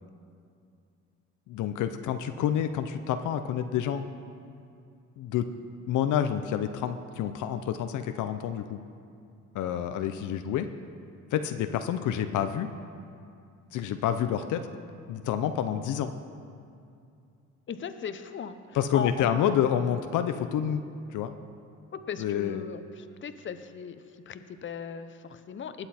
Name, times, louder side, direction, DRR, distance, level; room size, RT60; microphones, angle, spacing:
voice 1, 1.5-4.0 5.2-5.5 5.9-8.8 9.5-10.7 11.3-12.7 13.7-14.7 15.1-16.1 18.7-20.8 21.1-21.4 22.2-22.6, left 9 dB, 80° left, 9 dB, 0.6 m, -28 dB
voice 2, 17.7-19.4 21.9-25.9, left 7 dB, 40° left, 10 dB, 0.7 m, -38 dB
19.5 x 8.0 x 4.3 m, 2.5 s
cardioid pair, 90°, 30 cm